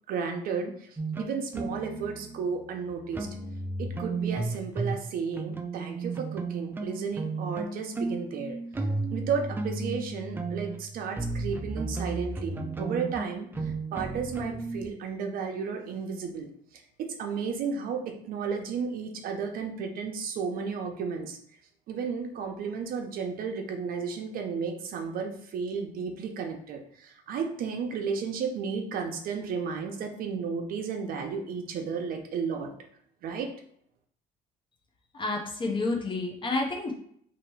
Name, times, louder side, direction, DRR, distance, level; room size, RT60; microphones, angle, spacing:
voice 1, 0.1-3.3 3.8-16.5 16.7-21.4 21.9-32.7 33.2-33.5, right 6 dB, 60° right, 3 dB, 0.8 m, -33 dB
sound 1, 1.0-5.0 5.4-14.9, right 3 dB, 15° right, 0.4 m, -34 dB
voice 2, 35.1-36.9, left 2 dB, 30° left, 0 dB, 0.8 m, -29 dB
3.0 x 2.9 x 4.5 m, 0.67 s
cardioid pair, 130°, 16 cm